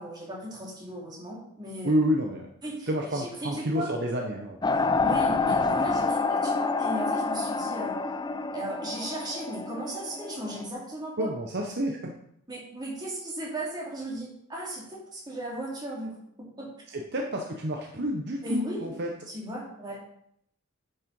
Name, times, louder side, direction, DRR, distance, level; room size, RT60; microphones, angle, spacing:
voice 1, 0.0-1.9 2.6-3.9 5.0-8.0 8.5-11.3 12.5-16.1 16.6-16.7 18.4-18.9 19.3-20.1, right 1 dB, 20° right, -3 dB, 2.6 m, -36 dB
voice 2, 1.8-2.5 2.9-4.6 11.2-12.0 16.9-19.1, equal, 50° right, 1 dB, 0.9 m, -29 dB
sound 1, 4.6-10.7, left 3 dB, 20° left, 0.4 m, -28 dB
8.9 x 5.7 x 5.4 m, 0.71 s
head